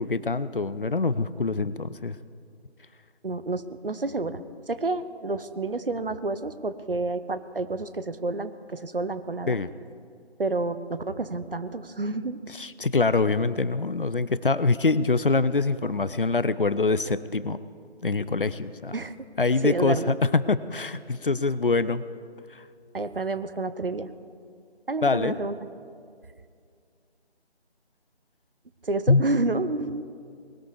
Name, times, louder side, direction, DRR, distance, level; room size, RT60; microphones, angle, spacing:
voice 1, 0.0-2.2 9.5-9.7 12.6-17.6 18.0-18.9 19.4-22.0 25.0-25.4 29.1-29.2, left 3 dB, 55° left, 16 dB, 0.6 m, -24 dB
voice 2, 3.2-9.6 10.4-12.4 18.9-19.1 19.6-20.2 22.9-24.1 24.9-25.6 28.8-30.0, right 2 dB, 55° right, 12 dB, 0.8 m, -29 dB
20.0 x 13.5 x 4.8 m, 2.3 s
figure-of-eight pair, 165°, 32 cm